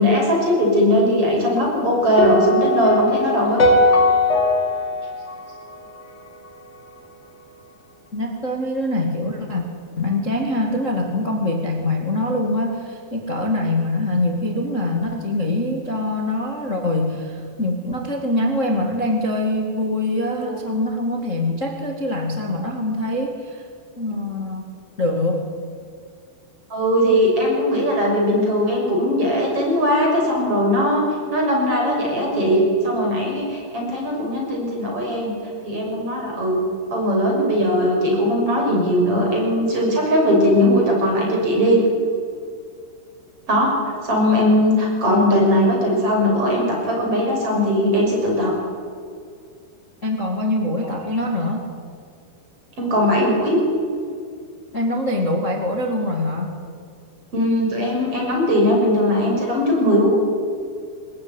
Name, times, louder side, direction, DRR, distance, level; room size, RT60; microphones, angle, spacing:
voice 1, 0.0-3.6 20.4-20.6 26.7-31.0 31.3-35.3 35.6-36.6 36.9-41.8 43.5-48.5 52.8-53.6 57.3-60.2, equal, 30° right, -1 dB, 7.0 m, -19 dB
sound 1, 2.2-6.5, left 1 dB, 75° left, 0.6 m, -19 dB
voice 2, 8.1-9.6 9.9-23.7 24.0-25.5 50.0-51.6 54.7-56.6, left 1 dB, 50° left, 2 dB, 0.9 m, -24 dB
23.0 x 19.5 x 9.8 m, 2.2 s
omnidirectional pair, 5.4 m